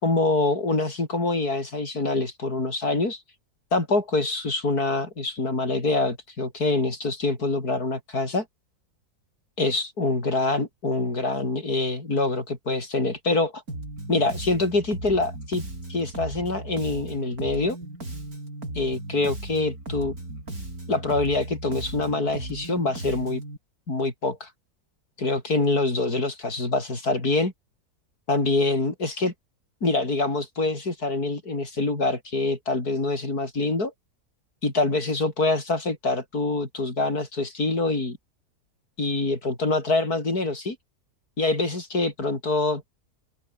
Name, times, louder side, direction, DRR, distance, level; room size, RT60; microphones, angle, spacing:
voice 1, 0.0-3.2 3.7-8.5 9.6-13.6 14.1-15.6 15.9-17.8 18.7-20.1 20.9-23.4 23.9-24.5 25.2-27.5 28.3-29.3 29.8-33.9 34.6-38.2 39.0-40.8 41.4-42.8, left 2 dB, 70° left, 5.7 m, -25 dB
Bass guitar, 13.7-23.6, right 2 dB, 65° right, 8.0 m, -36 dB
open air
omnidirectional pair, 1.7 m